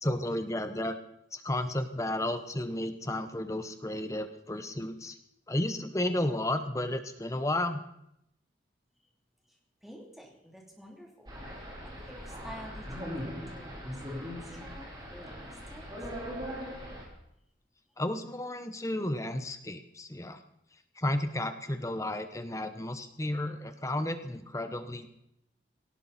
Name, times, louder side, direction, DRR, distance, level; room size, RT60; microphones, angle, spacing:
voice 1, 0.0-1.0 1.3-5.2 5.5-7.8 18.0-20.4 21.0-25.1, left 1 dB, 15° left, 9 dB, 1.0 m, -32 dB
voice 2, 9.8-11.3 11.8-15.9, equal, ahead, -1 dB, 3.2 m, -50 dB
sound 1, 11.3-17.1, equal, 25° right, 4.1 m, -40 dB
18.0 x 17.5 x 4.3 m, 0.80 s
head